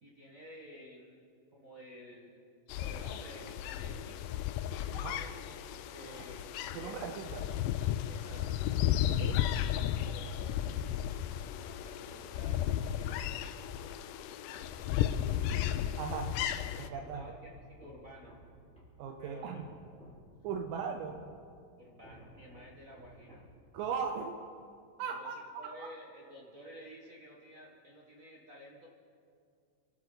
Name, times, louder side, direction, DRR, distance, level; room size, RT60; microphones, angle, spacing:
voice 1, 0.0-1.2 1.5-4.2 4.7-5.4 5.9-6.5 6.8-7.2 8.1-8.7 9.8-10.8 11.5-13.3 15.5-15.7 16.9-18.4 19.2-19.6 20.4-20.6 21.8-23.4 25.1-28.9, equal, 55° right, -3 dB, 0.8 m, -52 dB
sound 1, 2.7-16.9, left 11 dB, 80° left, 1.9 m, -34 dB
sound 2, 4.5-11.7 12.0-14.1 14.5-24.4, right 1 dB, ahead, 5.1 m, -58 dB
voice 2, 6.7-7.4 9.1-9.4 16.0-16.3 16.8-17.2 19.0-19.6 20.4-21.2 23.7-24.4 25.0-25.9, right 6 dB, 75° right, 5 dB, 2.3 m, -38 dB
28.0 x 12.0 x 4.0 m, 2.3 s
omnidirectional pair, 4.1 m